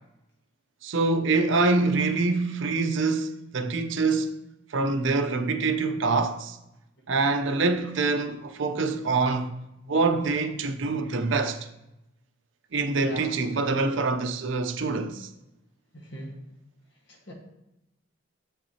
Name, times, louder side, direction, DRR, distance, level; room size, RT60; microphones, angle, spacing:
voice 1, 0.8-4.3 4.7-6.6 7.1-9.5 9.9-11.7 12.7-15.3, right 3 dB, 75° right, 0.6 m, -25 dB
voice 2, 13.0-13.3 15.9-16.3 17.1-17.3, right 1 dB, 60° left, 1.4 m, -39 dB
7.4 x 5.8 x 2.8 m
head